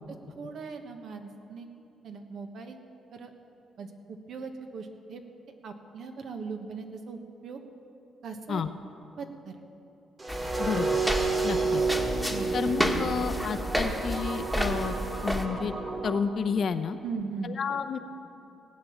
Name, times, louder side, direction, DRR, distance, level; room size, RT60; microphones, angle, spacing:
voice 1, 0.4-1.7 2.0-2.8 3.1-3.3 3.8-5.2 5.6-7.6 8.2-8.7 9.2-9.6 12.3-12.6 17.0-17.5, right 5 dB, 65° right, 5 dB, 1.3 m, -39 dB
sound 1, 10.2-16.2, right 4 dB, 30° right, 2.2 m, -31 dB
sound 2, 10.3-15.5, equal, 5° right, 1.5 m, -31 dB
voice 2, 10.6-11.0 11.4-11.8 12.5-14.9 15.2-15.7 16.0-17.0 17.4-18.0, left 6 dB, 55° left, 10 dB, 0.7 m, -30 dB
18.5 x 8.6 x 7.2 m, 2.8 s
cardioid pair, 90°, 0 cm